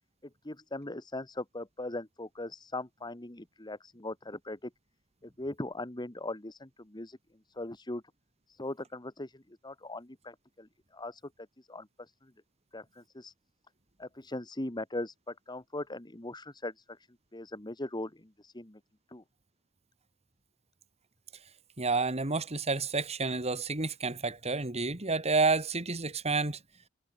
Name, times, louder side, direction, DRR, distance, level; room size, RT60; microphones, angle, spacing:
voice 1, 0.4-4.7 5.2-7.2 7.5-8.0 8.5-11.2 11.6-12.3 12.7-13.3 14.0-17.0 17.3-18.8 19.1-19.2, left 2 dB, 20° left, 1.5 m, -40 dB
voice 2, 21.8-26.6, right 3 dB, 30° right, 2.0 m, -30 dB
head